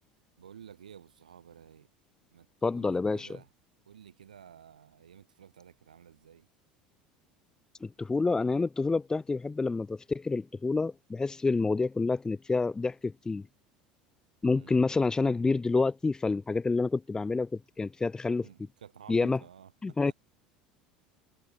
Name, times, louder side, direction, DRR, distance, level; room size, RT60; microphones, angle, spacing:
voice 1, 0.4-1.9 2.3-2.5 2.7-3.5 3.9-6.5 14.5-14.8 18.4-20.1, right 8 dB, 80° right, 7.6 m, -52 dB
voice 2, 2.6-3.4 7.8-13.4 14.4-18.5 19.1-19.4 19.8-20.1, left 3 dB, 15° left, 1.3 m, -28 dB
figure-of-eight pair, 70°, 4 cm